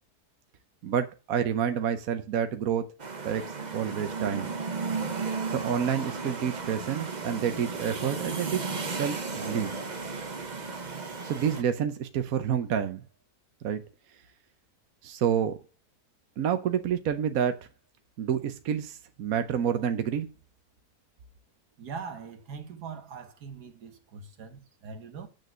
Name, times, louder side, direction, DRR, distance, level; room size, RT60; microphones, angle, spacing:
voice 1, 0.8-2.8 3.2-4.5 5.5-9.7 11.2-13.0 13.6-13.8 15.0-15.6 16.4-17.7 18.2-20.3, right 8 dB, 65° right, 1.2 m, -29 dB
sound 1, 3.0-11.6, right 4 dB, 30° right, 1.1 m, -34 dB
voice 2, 21.8-25.3, right 5 dB, 85° right, 1.9 m, -42 dB
8.4 x 6.6 x 6.2 m
omnidirectional pair, 1.7 m